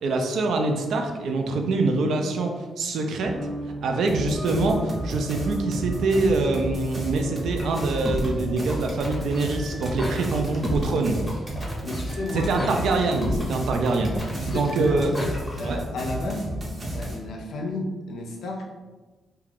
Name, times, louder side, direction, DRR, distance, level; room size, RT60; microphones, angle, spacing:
voice 1, 0.0-3.4 3.8-11.2 12.3-15.2 15.6-15.8, right 3 dB, 75° right, 4 dB, 0.3 m, -25 dB
sound 1, 3.2-10.6, equal, 60° right, 0.8 m, -38 dB
sound 2, 4.1-17.2, right 1 dB, 25° right, 0.5 m, -32 dB
sound 3, 7.5-15.7, left 1 dB, 15° left, 0.7 m, -33 dB
voice 2, 11.8-12.5 14.3-15.0 15.6-16.5 16.9-18.6, left 2 dB, 80° left, 1 dB, 0.5 m, -32 dB
2.4 x 2.2 x 3.3 m, 1.3 s
cardioid pair, 140°, 0 cm